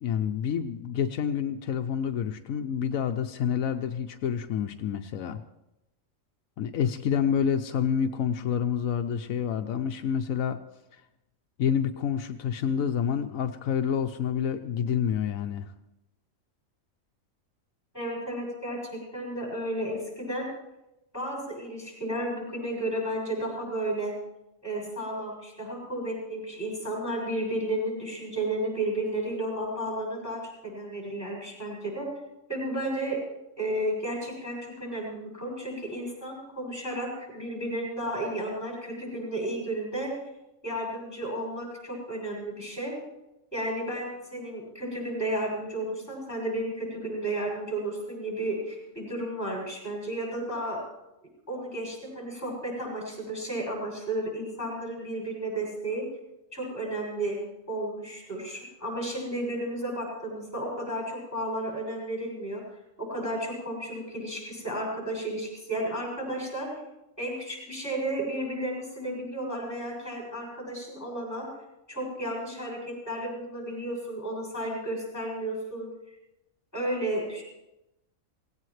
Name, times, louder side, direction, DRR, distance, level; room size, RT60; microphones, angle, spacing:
voice 1, 0.0-5.4 6.6-10.6 10.9-11.0 11.6-15.7, left 8 dB, 80° left, 7 dB, 1.1 m, -28 dB
voice 2, 17.9-20.4 21.1-24.1 24.6-32.1 32.5-33.2 33.6-40.1 40.6-42.9 43.5-50.8 51.5-56.0 56.5-57.4 57.7-66.7 67.2-71.5 71.9-75.9 76.7-77.4, right 1 dB, 10° left, -2 dB, 6.5 m, -33 dB
18.0 x 17.0 x 3.2 m, 0.93 s
omnidirectional pair, 1.4 m